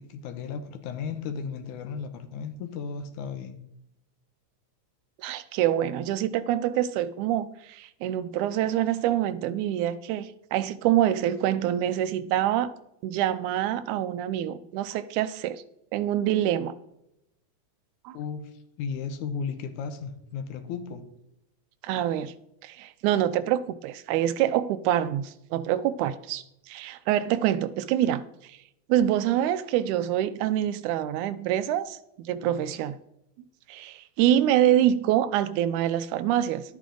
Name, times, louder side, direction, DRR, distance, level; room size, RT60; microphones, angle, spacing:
voice 1, 0.0-3.6 18.1-18.5 18.8-21.0, left 6 dB, 90° left, 2.4 m, -35 dB
voice 2, 5.2-12.7 13.0-15.6 15.9-16.7 18.1-18.2 21.8-22.3 22.6-28.6 28.9-33.0 33.7-36.6, right 11 dB, 90° right, 2.1 m, -26 dB
11.5 x 8.4 x 3.8 m
omnidirectional pair, 3.4 m